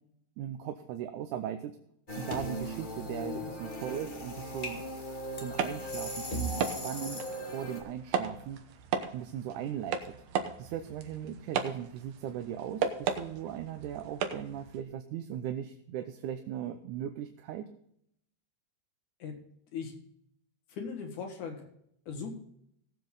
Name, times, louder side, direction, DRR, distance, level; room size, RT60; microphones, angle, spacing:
voice 1, 0.4-1.8 2.2-4.8 5.3-7.2 7.5-17.7, right 10 dB, 85° right, 7 dB, 2.3 m, -38 dB
sound 1, 2.1-7.8, equal, 20° left, 1.4 m, -37 dB
sound 2, 5.5-14.8, right 7 dB, 65° right, 2.1 m, -36 dB
voice 2, 20.7-21.6 22.1-22.3, left 5 dB, 80° left, 4 dB, 3.4 m, -38 dB
18.5 x 7.6 x 3.9 m, 0.71 s
omnidirectional pair, 3.4 m